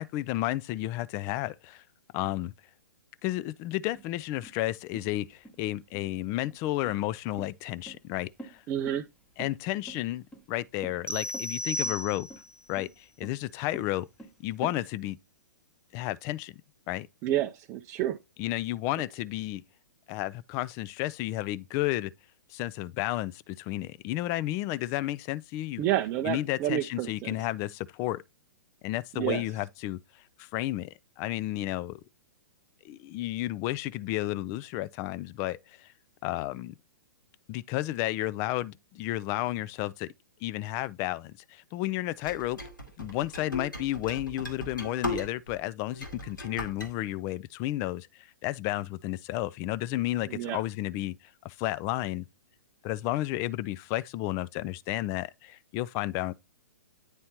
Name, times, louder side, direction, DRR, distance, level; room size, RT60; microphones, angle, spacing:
voice 1, 0.0-1.8 2.1-2.5 3.2-8.6 9.4-12.3 12.7-14.1 14.4-15.2 15.9-16.5 16.9-17.1 18.4-19.6 20.1-22.1 22.5-25.8 26.2-28.2 28.8-30.0 30.4-32.0 32.8-35.9 36.2-36.7 37.5-40.1 40.4-42.6 43.0-51.1 51.4-52.3 52.8-56.3, left 16 dB, 30° left, 0.4 m, -32 dB
sound 1, 3.9-14.8, right 2 dB, 10° left, 1.1 m, -47 dB
voice 2, 8.7-9.0 17.2-18.2 25.8-27.3 29.2-29.4 50.3-50.6, right 12 dB, 25° right, 0.5 m, -29 dB
sound 2, 11.1-12.6, equal, 85° right, 0.8 m, -34 dB
sound 3, 42.2-45.6 45.9-46.9, left 1 dB, 90° left, 2.0 m, -37 dB
9.6 x 4.2 x 2.8 m
figure-of-eight pair, 115°, 10 cm